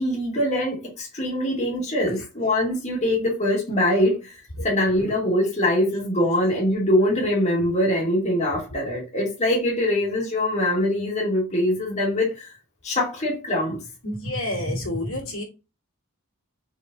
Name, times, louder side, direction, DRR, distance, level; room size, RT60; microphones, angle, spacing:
voice 1, 0.0-4.4 4.6-12.5 12.8-13.8 14.6-14.8, left 1 dB, 30° left, 1.7 m, -23 dB
voice 2, 14.0-15.4, left 1 dB, 70° left, 2.1 m, -29 dB
4.5 x 4.3 x 2.6 m
head